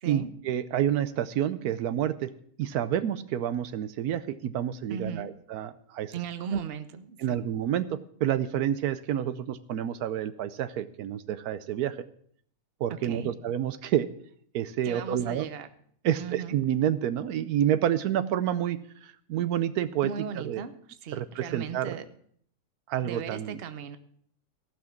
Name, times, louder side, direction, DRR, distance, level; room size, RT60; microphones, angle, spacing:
voice 1, 0.1-2.3 2.6-6.1 6.5-6.6 7.2-12.0 12.8-14.1 14.5-15.5 16.0-20.1 20.4-20.6 21.1-21.9 22.9-23.6, right 10 dB, 80° right, 13 dB, 1.1 m, -29 dB
voice 2, 4.9-5.3 6.1-7.4 13.0-13.3 14.8-15.7 16.2-16.6 20.0-20.7 21.0-22.0 23.0-24.0, right 6 dB, 45° right, 10 dB, 0.9 m, -37 dB
15.0 x 6.1 x 7.1 m, 0.63 s
omnidirectional pair, 1.6 m